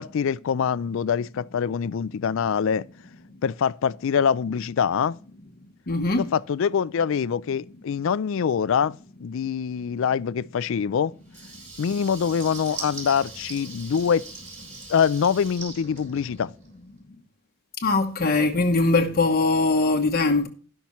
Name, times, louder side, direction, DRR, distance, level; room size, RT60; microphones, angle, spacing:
voice 1, 0.0-2.9 3.4-5.2 6.2-11.1 11.8-14.2 14.9-16.5, left 7 dB, 70° left, 0.4 m, -24 dB
voice 2, 5.9-6.3 17.8-20.5, left 3 dB, 45° left, 1.0 m, -21 dB
Water tap faucet / Liquid, 11.3-16.8, right 3 dB, 35° right, 4.1 m, -41 dB
17.5 x 5.9 x 3.1 m
head